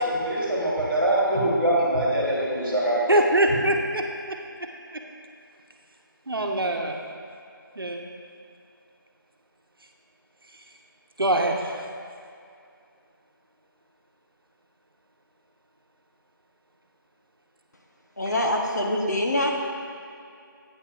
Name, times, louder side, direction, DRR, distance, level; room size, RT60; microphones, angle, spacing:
voice 1, 0.0-3.2, right 1 dB, 5° left, -15 dB, 1.1 m, -23 dB
voice 2, 3.1-4.4 6.3-7.0 7.8-8.0 11.2-11.7, right 1 dB, 85° right, 2 dB, 1.0 m, -23 dB
voice 3, 18.2-19.5, left 1 dB, 50° left, 0 dB, 1.0 m, -24 dB
10.5 x 8.8 x 2.5 m, 2.4 s
figure-of-eight pair, 175°, 12 cm